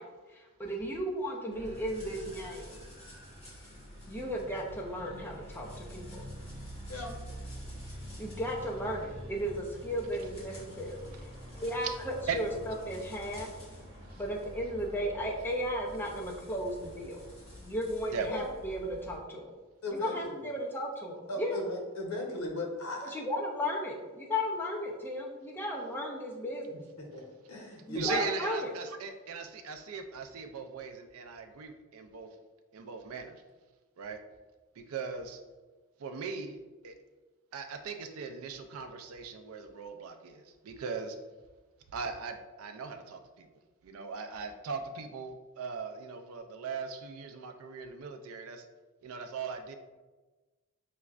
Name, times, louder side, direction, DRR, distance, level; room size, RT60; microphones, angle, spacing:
voice 1, 0.0-2.8 4.1-6.3 8.2-11.3 11.5-13.5 14.2-17.2 17.6-19.5 19.9-21.6 23.1-26.8 27.9-28.7, equal, 10° left, -1 dB, 0.5 m, -35 dB
sound 1, 1.5-19.2, equal, 30° left, 1.2 m, -47 dB
voice 2, 19.8-20.4 21.3-23.1 27.0-27.2 27.5-28.3, left 2 dB, 85° left, 1 dB, 0.8 m, -37 dB
voice 3, 28.0-32.3 32.7-33.4 34.0-34.2 34.8-35.4 36.0-36.6 36.8-36.9 37.5-41.2 41.9-43.5 43.8-48.6 49.0-49.7, right 5 dB, 75° right, 7 dB, 0.4 m, -39 dB
5.9 x 2.2 x 2.4 m, 1.3 s
head